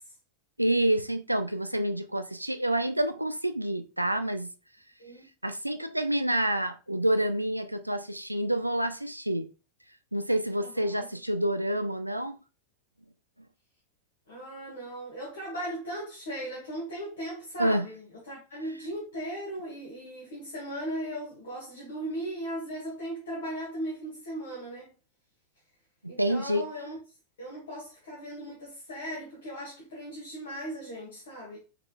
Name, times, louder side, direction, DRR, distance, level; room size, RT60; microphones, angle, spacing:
voice 1, 0.6-4.5 5.4-9.5 10.1-12.4 17.6-17.9 26.0-26.6, right 1 dB, 85° right, 0.3 m, -28 dB
voice 2, 10.6-11.1 14.3-18.0 18.3-24.9 26.1-27.0 27.4-31.6, right 1 dB, 65° left, 1.7 m, -37 dB
5.6 x 3.8 x 2.2 m
figure-of-eight pair, 90°, 0 cm